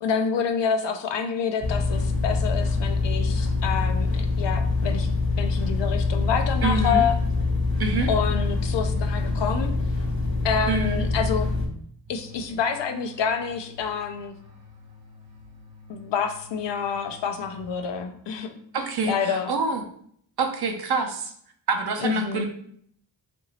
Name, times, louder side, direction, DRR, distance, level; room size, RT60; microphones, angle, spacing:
voice 1, 0.0-5.1 5.4-7.2 8.1-9.7 10.4-11.5 12.1-14.3 15.9-19.5 22.0-22.5, left 6 dB, 70° left, 7 dB, 0.5 m, -28 dB
sound 1, 1.6-11.7, left 3 dB, 50° left, 0.9 m, -25 dB
voice 2, 6.6-7.1 7.8-8.1 10.7-11.1 18.7-19.8 20.4-21.3 21.7-22.5, right 4 dB, 55° right, 4 dB, 0.6 m, -26 dB
sound 2, 12.1-18.2, left 3 dB, 85° right, 0.9 m, -49 dB
2.8 x 2.6 x 2.8 m, 0.64 s
cardioid pair, 70°, 45 cm